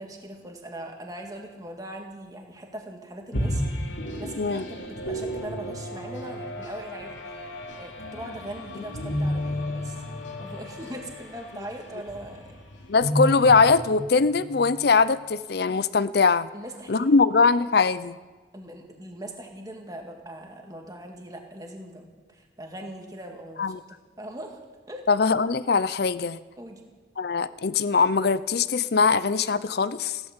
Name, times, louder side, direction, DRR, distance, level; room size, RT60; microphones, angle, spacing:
voice 1, 0.0-3.6 3.9-7.5 7.8-10.0 10.4-12.6 16.5-17.2 18.5-23.8 24.2-24.6 24.9-25.0 26.6-26.9, right 1 dB, 20° right, 2 dB, 2.0 m, -40 dB
sound 1, 3.3-14.9, equal, 90° left, 2.8 m, -32 dB
voice 2, 12.9-16.5 16.9-18.2 23.6-23.8 25.1-26.4 27.2-30.2, left 4 dB, 55° left, 17 dB, 0.5 m, -21 dB
16.0 x 12.5 x 7.3 m, 1.4 s
head